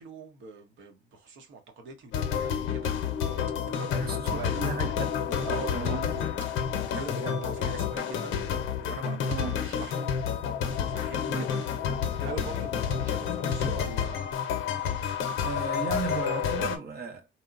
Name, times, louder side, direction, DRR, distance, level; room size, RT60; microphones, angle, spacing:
voice 1, 0.0-2.9 3.6-4.6 5.5-10.1 10.8-11.6 12.2-14.2, right 4 dB, 80° right, 0.9 m, -42 dB
sound 1, 2.1-16.8, left 7 dB, 85° left, 0.6 m, -30 dB
voice 2, 3.9-5.5 5.7-6.2 9.3-9.5 11.2-11.4 15.4-17.4, right 4 dB, 50° right, 0.6 m, -35 dB
2.8 x 2.0 x 2.4 m
cardioid pair, 90°, 20 cm